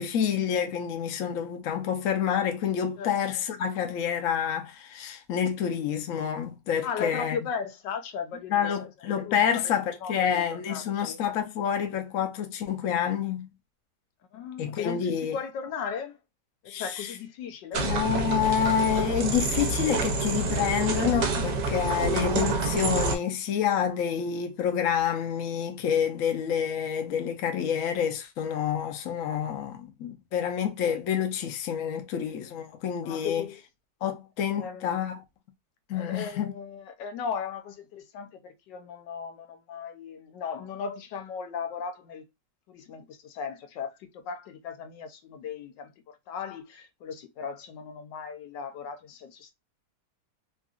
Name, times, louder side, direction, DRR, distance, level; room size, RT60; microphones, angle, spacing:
voice 1, 0.0-7.4 8.5-13.5 14.6-15.4 16.7-17.1 17.8-33.4 34.0-35.2 35.9-36.5, left 8 dB, 60° left, 0.9 m, -28 dB
voice 2, 6.8-8.8 9.2-9.7 10.0-11.2 14.3-16.2 16.6-17.9 33.0-33.6 34.5-35.1 35.9-42.3 42.7-49.5, left 6 dB, 85° left, 1.3 m, -37 dB
sound 1, 17.7-23.2, right 3 dB, 75° right, 1.4 m, -27 dB
3.8 x 2.5 x 2.2 m
omnidirectional pair, 1.9 m